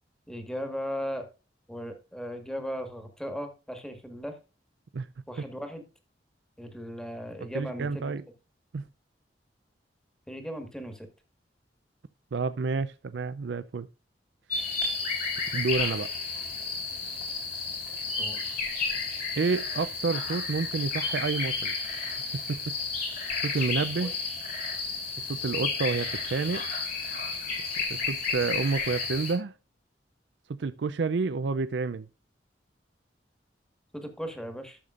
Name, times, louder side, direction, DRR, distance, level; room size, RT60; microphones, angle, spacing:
voice 1, 0.3-1.3 1.7-4.4 5.3-5.8 6.6-8.1 10.3-11.1 18.2-18.5 24.0-24.1 33.9-34.8, equal, 5° left, 1.5 m, -37 dB
voice 2, 7.5-8.2 8.7-8.8 12.3-13.9 15.5-16.1 19.4-21.7 22.5-22.6 23.4-24.1 25.3-26.6 27.9-29.5 30.6-32.1, right 4 dB, 70° right, 0.4 m, -29 dB
sound 1, 14.5-29.3, left 4 dB, 55° left, 3.8 m, -32 dB
12.0 x 6.7 x 2.4 m
head